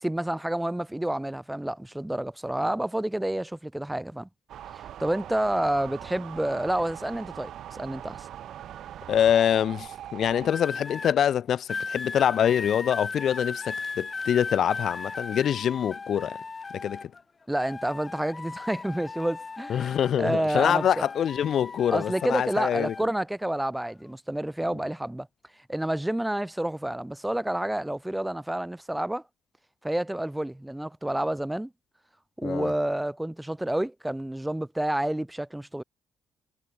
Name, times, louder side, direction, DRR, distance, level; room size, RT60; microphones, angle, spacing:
voice 1, 0.0-4.3 5.0-8.3 17.5-21.1 21.9-25.3 25.7-29.2 29.8-31.7 32.4-35.8, right 1 dB, 5° right, 2.5 m, -29 dB
sound 1, 4.5-10.5, right 11 dB, 75° right, 2.1 m, -41 dB
voice 2, 9.1-16.4 16.7-17.1 19.7-22.9 32.4-32.7, left 9 dB, 65° left, 1.1 m, -25 dB
sound 2, 10.4-11.2 11.7-17.2 17.6-20.2 20.5-23.0 23.8-24.1, left 4 dB, 30° left, 3.0 m, -37 dB
cardioid pair, 90°, 0 cm